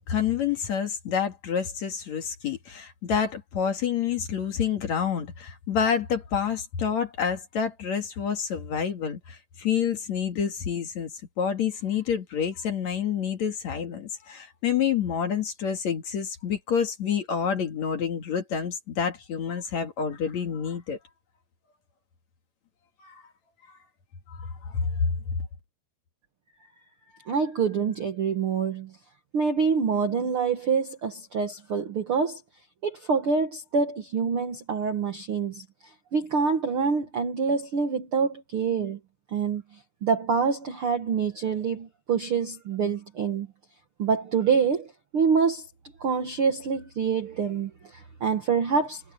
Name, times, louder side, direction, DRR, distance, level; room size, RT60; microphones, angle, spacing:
voice 1, 0.1-21.0 23.0-23.2 24.3-25.1, left 7 dB, 50° left, 2.7 m, -28 dB
voice 2, 27.3-28.9 29.3-32.4 32.8-35.6 36.1-39.0 39.3-39.6 40.0-43.5 44.0-44.9 45.1-45.6 46.0-49.0, right 5 dB, 90° right, 1.1 m, -26 dB
omnidirectional pair, 4.9 m